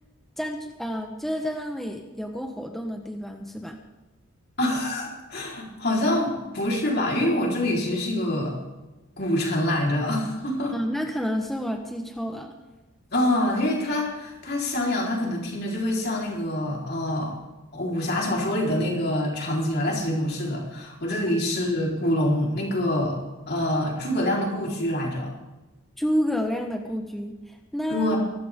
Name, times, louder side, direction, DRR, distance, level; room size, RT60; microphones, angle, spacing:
voice 1, 0.4-3.8 10.7-12.5 26.0-28.1, equal, ahead, 2 dB, 1.1 m, -29 dB
voice 2, 4.6-8.6 9.2-10.7 13.1-17.4 17.7-23.2 23.5-25.3 27.9-28.2, left 1 dB, 45° left, -2 dB, 4.1 m, -25 dB
23.5 x 13.0 x 3.7 m, 1.1 s
head